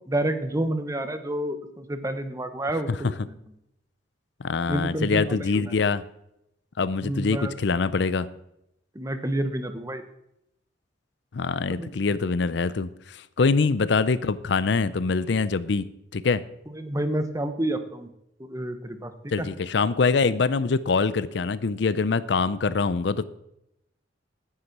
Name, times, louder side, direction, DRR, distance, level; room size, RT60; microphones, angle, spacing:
voice 1, 0.1-3.2 4.7-5.7 7.0-7.5 8.9-10.0 11.7-11.9 16.7-18.1 18.4-19.5, right 1 dB, 15° right, 9 dB, 1.0 m, -29 dB
voice 2, 4.4-6.0 6.8-8.3 11.3-15.8 16.1-16.4 19.3-23.2, left 4 dB, 65° left, 15 dB, 0.5 m, -24 dB
9.8 x 9.5 x 6.0 m, 0.82 s
head